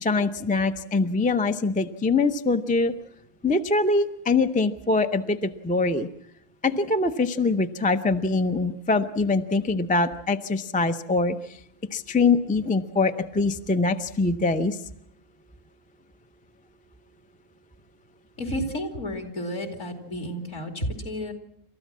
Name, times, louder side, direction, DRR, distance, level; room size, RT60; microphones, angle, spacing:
voice 1, 0.0-2.9 3.4-6.1 6.6-11.4 11.9-14.8, left 3 dB, 10° left, 8 dB, 0.4 m, -23 dB
voice 2, 18.4-21.3, equal, 60° left, 4 dB, 2.9 m, -31 dB
27.5 x 13.5 x 7.4 m, 0.77 s
omnidirectional pair, 1.5 m